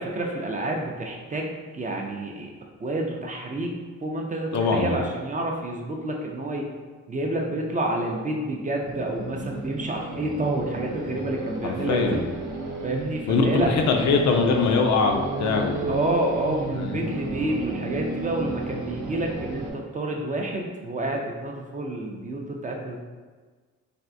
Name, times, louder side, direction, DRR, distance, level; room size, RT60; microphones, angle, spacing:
voice 1, 0.0-1.5 1.7-2.5 2.8-3.7 4.0-6.6 7.1-12.2 12.8-13.7 15.9-23.0, right 1 dB, 25° right, 0 dB, 0.4 m, -29 dB
voice 2, 4.5-5.0 11.6-12.2 13.3-15.9 16.7-17.0, left 4 dB, 65° left, 3 dB, 0.5 m, -22 dB
sound 1, 8.8-19.7, right 2 dB, 75° right, 0.7 m, -33 dB
3.4 x 2.4 x 2.6 m, 1.4 s
cardioid pair, 95°, 30 cm